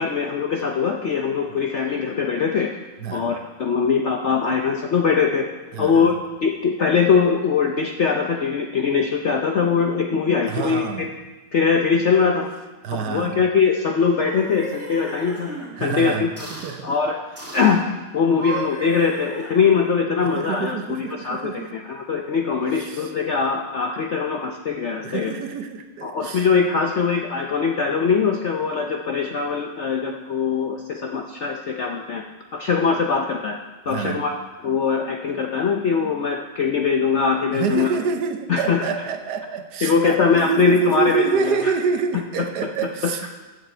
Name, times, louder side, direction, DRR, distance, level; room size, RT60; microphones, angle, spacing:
voice 1, 0.0-2.7 3.1-5.4 5.8-6.1 6.4-11.1 11.5-12.5 12.9-15.5 15.8-16.3 16.8-17.3 17.5-17.8 18.1-25.3 26.0-32.2 32.5-33.6 33.9-34.3 34.6-37.9 38.5-38.8 39.8-41.6 43.2-43.3, left 5 dB, 65° left, 2 dB, 0.7 m, -21 dB
voice 2, 3.0-3.3 5.7-6.1 10.4-11.1 12.8-13.4 15.8-16.9 20.2-21.7 22.8-23.1 25.0-26.5 33.8-34.2 37.5-43.3, right 6 dB, 65° right, 7 dB, 1.3 m, -27 dB
sound 1, 14.0-15.7 16.4-16.8 17.4-17.8 18.2-20.0, right 2 dB, 10° right, 1.9 m, -35 dB
14.0 x 7.3 x 4.4 m, 1.2 s
omnidirectional pair, 2.0 m